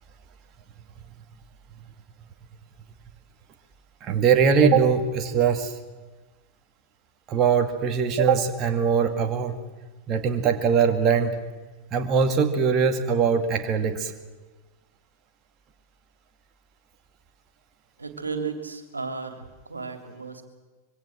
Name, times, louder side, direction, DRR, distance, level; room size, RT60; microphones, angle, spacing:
voice 1, 4.0-5.8 7.3-9.6 10.1-11.4 11.9-14.1, right 6 dB, 35° right, 6 dB, 2.1 m, -21 dB
voice 2, 18.0-20.4, right 4 dB, 80° right, 6 dB, 3.0 m, -34 dB
26.0 x 23.5 x 7.6 m, 1.3 s
figure-of-eight pair, 90°, 0 cm